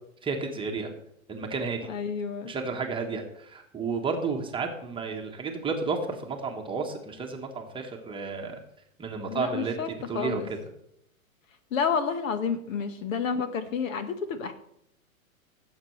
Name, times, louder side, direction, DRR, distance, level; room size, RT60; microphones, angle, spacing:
voice 1, 0.2-0.9 1.3-1.9 2.4-8.6 9.0-9.8 10.1-10.6, right 4 dB, 10° right, 2 dB, 1.1 m, -32 dB
voice 2, 1.9-2.6 9.2-9.9 10.1-10.5 11.7-14.5, left 6 dB, 65° left, 10 dB, 1.4 m, -30 dB
16.5 x 7.6 x 3.2 m, 0.75 s
hypercardioid pair, 130°, 43 cm